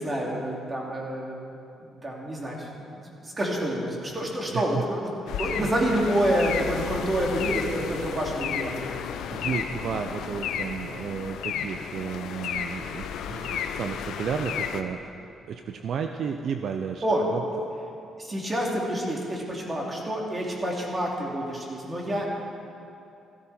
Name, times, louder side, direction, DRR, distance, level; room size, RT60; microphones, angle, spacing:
voice 1, 0.0-5.1 5.4-8.9 17.0-17.2 18.2-22.3, right 1 dB, 25° right, -2 dB, 3.0 m, -28 dB
voice 2, 4.5-4.8 5.5-5.7 8.9-9.0 9.3-15.1 15.5-17.4, right 6 dB, 65° right, 6 dB, 0.6 m, -33 dB
sound 1, 5.3-14.8, left 8 dB, 80° left, 0.7 m, -33 dB
15.0 x 14.0 x 4.4 m, 2.7 s
cardioid pair, 90°, 0 cm